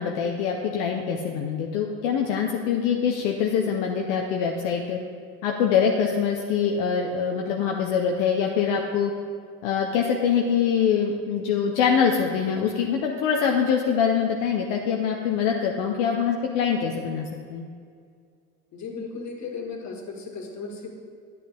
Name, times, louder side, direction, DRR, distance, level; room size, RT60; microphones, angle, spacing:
voice 1, 0.0-5.0 5.4-9.1 9.6-17.7, left 7 dB, 80° left, 1 dB, 0.8 m, -24 dB
voice 2, 18.7-20.9, left 4 dB, 50° left, 1 dB, 1.9 m, -35 dB
9.5 x 8.4 x 3.5 m, 2.2 s
hypercardioid pair, 75°, 37 cm